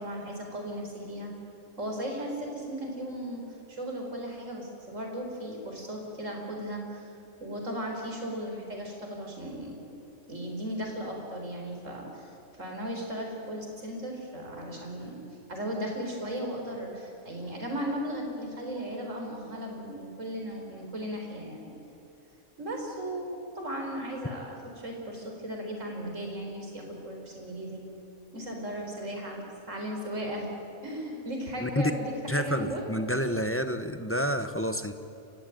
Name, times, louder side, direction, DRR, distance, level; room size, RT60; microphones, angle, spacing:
voice 1, 0.0-1.3 1.8-3.4 3.7-7.1 7.4-9.7 10.3-15.2 15.5-21.7 22.6-27.8 28.3-30.5 30.8-32.8, equal, 60° right, 1 dB, 4.9 m, -36 dB
voice 2, 31.6-31.9 32.3-34.9, equal, 10° left, 8 dB, 0.9 m, -29 dB
29.5 x 15.5 x 9.3 m, 2.7 s
omnidirectional pair, 1.5 m